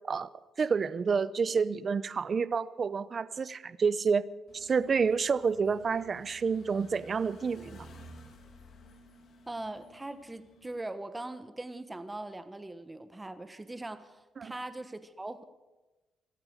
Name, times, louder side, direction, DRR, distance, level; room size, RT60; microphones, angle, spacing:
voice 1, 0.6-4.2 4.5-7.9 14.4-14.5, right 5 dB, 40° right, 17 dB, 0.7 m, -29 dB
sound 1, 4.5-10.7, equal, 60° left, 2.6 m, -54 dB
voice 2, 9.5-15.4, right 2 dB, 15° right, 11 dB, 1.2 m, -41 dB
24.5 x 8.8 x 6.6 m, 1.1 s
cardioid pair, 90°, 0 cm